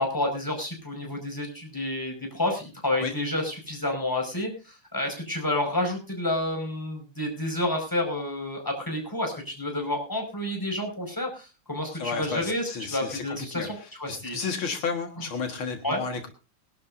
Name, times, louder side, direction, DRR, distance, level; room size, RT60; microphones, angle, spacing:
voice 1, 0.0-14.4 15.2-15.3 15.8-16.0, left 1 dB, 10° left, 1 dB, 5.5 m, -30 dB
voice 2, 12.0-13.2 13.6-16.3, left 5 dB, 75° left, 4 dB, 2.5 m, -32 dB
23.0 x 12.0 x 2.6 m, 0.31 s
omnidirectional pair, 2.3 m